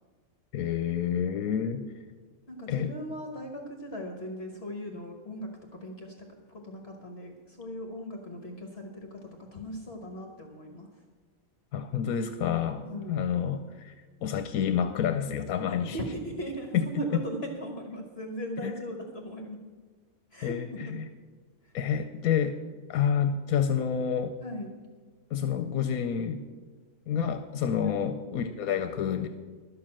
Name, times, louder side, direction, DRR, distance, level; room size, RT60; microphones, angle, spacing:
voice 1, 0.5-1.8 2.7-2.9 11.7-13.9 14.2-16.0 16.7-17.2 18.6-18.7 20.4-21.1 21.7-22.6 22.9-24.3 25.3-26.4 27.1-29.3, left 8 dB, 80° left, 8 dB, 1.1 m, -28 dB
voice 2, 2.5-5.5 5.8-6.1 6.5-9.1 9.5-10.9 12.8-13.3 15.9-19.6 20.3-20.6 20.9-21.0 24.4-24.7 27.8-28.1, equal, 45° left, 2 dB, 1.3 m, -38 dB
12.0 x 6.8 x 7.6 m, 1.4 s
omnidirectional pair, 1.5 m